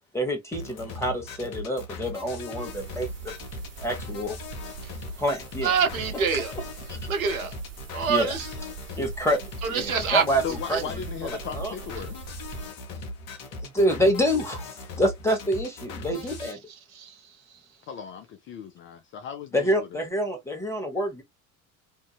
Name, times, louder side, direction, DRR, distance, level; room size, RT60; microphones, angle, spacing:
voice 1, 0.1-3.3 3.8-4.4 5.2-5.8 6.3-6.4 8.1-8.3 9.0-9.4 9.7-10.9 11.2-11.7 13.6-16.6 19.5-21.2, equal, 5° left, 1.2 m, -27 dB
sound 1, 0.5-16.5, left 2 dB, 50° left, 0.9 m, -39 dB
sound 2, 2.7-12.7, right 8 dB, 35° right, 1.3 m, -43 dB
voice 2, 5.6-6.5 7.1-7.6 7.9-8.5 9.6-10.2 10.7-10.8 16.9-17.2, right 6 dB, 75° right, 0.7 m, -25 dB
voice 3, 10.4-12.1 17.9-20.1, left 7 dB, 30° left, 0.4 m, -37 dB
2.7 x 2.6 x 2.3 m
figure-of-eight pair, 60°, 42 cm